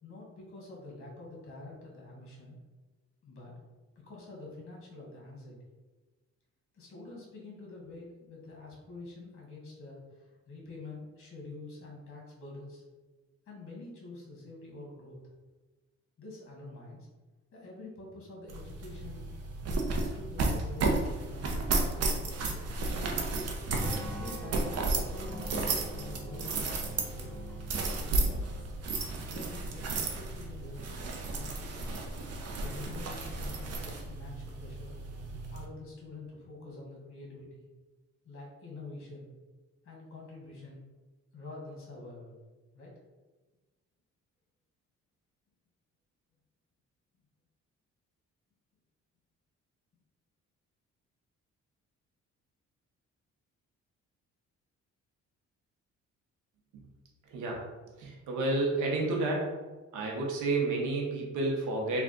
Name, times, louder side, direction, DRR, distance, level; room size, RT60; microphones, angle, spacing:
voice 1, 0.0-2.6 3.2-3.5 3.9-5.6 6.7-12.8 13.5-15.2 16.2-17.1 17.5-19.4 19.8-22.7 23.3-27.3 28.1-28.4 29.2-31.8 32.6-35.0 35.5-37.7 38.2-39.3 39.8-40.8 41.3-42.3 42.7-42.9, left 2 dB, 45° left, -3 dB, 1.3 m, -47 dB
sound 1, 18.5-35.6, right 3 dB, 55° right, 0.7 m, -33 dB
sound 2, 23.8-28.9, left 1 dB, 5° left, 0.3 m, -44 dB
voice 2, 57.3-57.6 58.0-59.5 59.9-62.0, right 2 dB, 85° right, -1 dB, 0.9 m, -30 dB
3.3 x 2.4 x 3.8 m, 1.2 s
cardioid pair, 90°, 30 cm